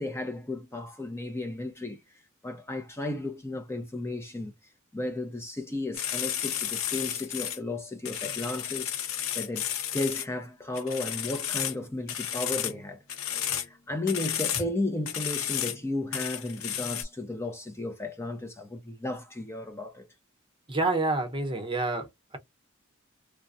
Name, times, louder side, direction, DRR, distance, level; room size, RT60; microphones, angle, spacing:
voice 1, 0.0-9.7 9.9-13.0 13.3-20.0, left 2 dB, 15° left, 0.5 m, -34 dB
sound 1, 5.9-7.6 8.1-10.3 10.8-11.8 12.1-12.8 13.1-13.7 14.1-14.6 15.1-15.8 16.1-17.0, left 10 dB, 85° left, 0.7 m, -32 dB
voice 2, 20.7-22.4, right 2 dB, 25° right, 0.9 m, -28 dB
3.3 x 2.2 x 2.5 m
head